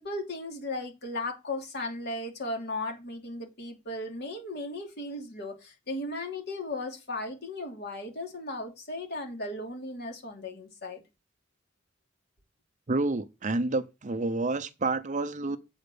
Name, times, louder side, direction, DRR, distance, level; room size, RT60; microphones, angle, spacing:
voice 1, 0.0-11.0, left 2 dB, 60° left, 2.7 m, -36 dB
voice 2, 12.9-15.6, right 2 dB, 40° right, 0.7 m, -29 dB
8.0 x 4.3 x 6.9 m
head